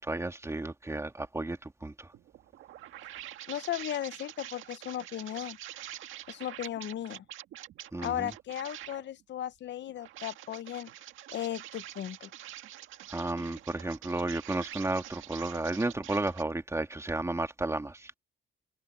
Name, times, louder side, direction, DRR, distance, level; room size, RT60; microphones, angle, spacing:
voice 1, 0.1-2.1 7.9-8.3 13.1-18.1, right 2 dB, 15° right, 2.3 m, -33 dB
sound 1, 2.1-9.1 9.9-16.4, right 13 dB, 85° right, 1.8 m, -46 dB
voice 2, 3.5-5.6 6.3-7.2 8.0-10.9 11.3-12.3, left 11 dB, 65° left, 0.9 m, -36 dB
cardioid pair, 90°, 20 cm